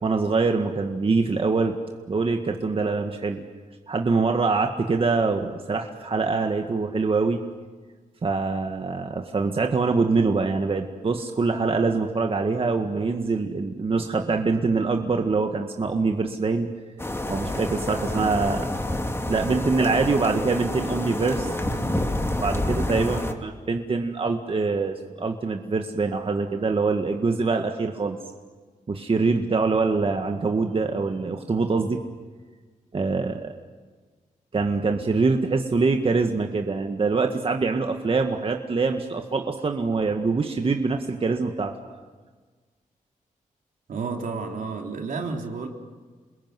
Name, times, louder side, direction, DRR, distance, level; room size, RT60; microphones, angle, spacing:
voice 1, 0.0-1.8 2.1-3.4 3.9-7.4 8.2-16.7 17.3-18.7 19.3-28.2 28.9-32.0 32.9-33.5 34.5-41.7, right 4 dB, 40° right, 4 dB, 1.9 m, -24 dB
sound 1, 17.0-23.3, left 1 dB, 15° left, 2.5 m, -28 dB
voice 2, 43.9-45.7, right 4 dB, 75° right, 2 dB, 3.6 m, -31 dB
29.0 x 21.5 x 9.4 m, 1.4 s
cardioid pair, 85°, 14 cm